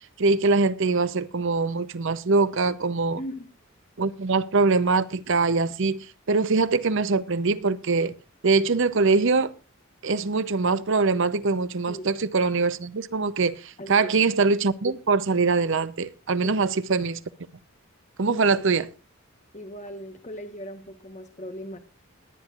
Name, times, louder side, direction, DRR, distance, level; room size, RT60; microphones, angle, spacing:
voice 1, 0.2-3.2 4.0-6.0 6.3-8.1 8.4-9.5 10.0-17.2 18.2-18.9, right 4 dB, 60° right, 0.7 m, -23 dB
voice 2, 13.8-14.1 16.4-16.7 18.3-18.9 19.5-21.8, equal, 35° left, 1.1 m, -38 dB
21.0 x 9.8 x 2.5 m
head